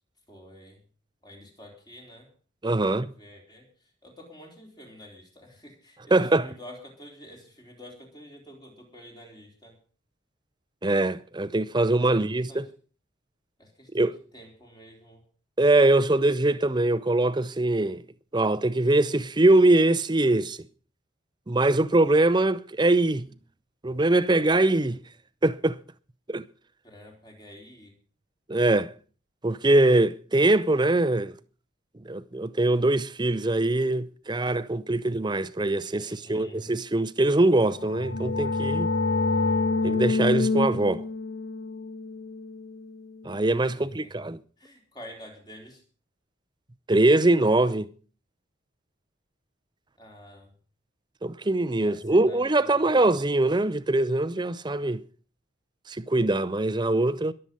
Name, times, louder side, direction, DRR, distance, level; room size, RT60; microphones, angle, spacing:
voice 1, 0.3-0.8 1.2-2.3 2.9-9.8 12.0-12.7 13.6-15.2 26.8-27.9 36.0-36.6 43.7-44.1 44.6-45.8 50.0-50.5 51.8-53.1, equal, 20° left, 3.9 m, -48 dB
voice 2, 2.6-3.0 6.1-6.5 10.8-12.6 13.9-14.1 15.6-18.0 18.3-20.6 21.5-23.3 23.8-25.0 25.4-25.8 26.3-26.5 28.5-28.9 29.4-31.3 32.0-38.9 39.8-41.0 43.2-44.4 46.9-47.9 51.2-55.0 55.9-57.3, right 2 dB, 20° right, 0.6 m, -22 dB
sound 1, 37.6-43.2, left 3 dB, 65° left, 1.1 m, -27 dB
22.0 x 7.8 x 5.4 m
head